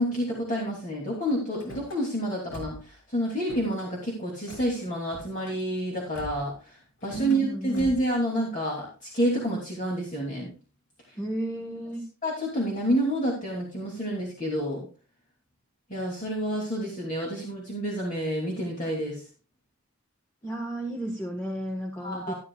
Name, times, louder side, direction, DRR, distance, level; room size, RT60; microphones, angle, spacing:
voice 1, 0.0-10.5 11.1-11.2 12.2-14.9 15.9-19.2 22.0-22.3, equal, 35° left, -3 dB, 2.9 m, -29 dB
Car / Slam, 1.5-2.0 2.5-2.9 3.2-3.9 4.5-4.7 5.1-5.6 6.1-6.5 7.0-7.4 7.7-8.1, right 1 dB, 90° left, 7.2 m, -43 dB
voice 2, 7.2-7.9 11.2-12.1 20.4-22.3, right 1 dB, 10° left, -2 dB, 1.4 m, -33 dB
12.5 x 12.0 x 2.4 m, 0.34 s
head